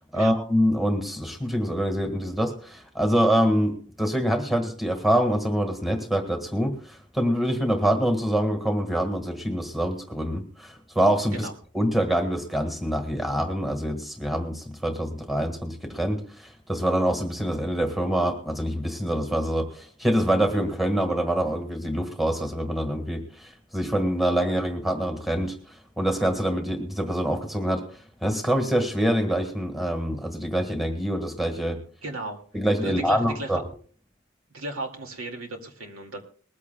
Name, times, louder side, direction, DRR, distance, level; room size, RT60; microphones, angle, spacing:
voice 1, 0.0-11.5 11.7-27.8 28.2-31.8 32.5-33.6, equal, ahead, 5 dB, 1.6 m, -25 dB
voice 2, 32.0-32.4 32.8-33.6 34.5-36.2, right 1 dB, 75° right, 4 dB, 2.3 m, -35 dB
20.5 x 15.0 x 2.3 m, 0.43 s
head